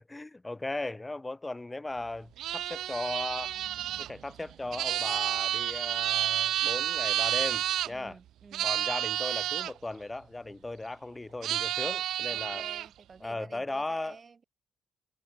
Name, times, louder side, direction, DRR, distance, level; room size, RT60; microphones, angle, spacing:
voice 1, 0.0-3.6 4.0-8.2 8.6-12.7 13.2-14.2, left 2 dB, 15° left, 3.5 m, -37 dB
sound 1, 2.4-7.9 8.5-9.7 11.4-12.9, right 12 dB, 80° right, 0.5 m, -30 dB
voice 2, 7.9-8.7 12.3-14.4, right 5 dB, 35° right, 4.6 m, -50 dB
cardioid pair, 90°, 0 cm